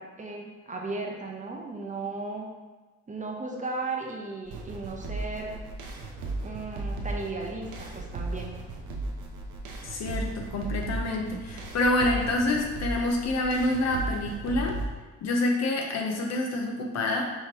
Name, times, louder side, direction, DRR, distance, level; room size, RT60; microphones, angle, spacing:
voice 1, 0.0-2.5 3.1-5.6 6.4-8.5, right 3 dB, 25° right, 0 dB, 0.8 m, -35 dB
sound 1, 4.5-14.9, right 2 dB, 75° right, 0.8 m, -36 dB
voice 2, 9.8-14.8 15.2-17.3, left 2 dB, 60° left, 1 dB, 0.8 m, -27 dB
5.6 x 3.1 x 3.0 m, 1.3 s
cardioid pair, 90°, 30 cm